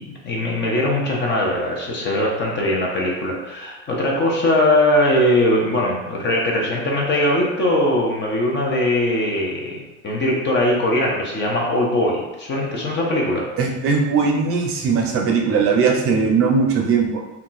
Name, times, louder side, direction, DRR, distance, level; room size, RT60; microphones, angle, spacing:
voice 1, 0.0-13.4, left 1 dB, 30° left, -1 dB, 0.6 m, -20 dB
voice 2, 13.6-17.2, right 5 dB, 40° right, 1 dB, 0.6 m, -19 dB
2.8 x 2.3 x 3.9 m, 1.0 s
cardioid pair, 145°, 36 cm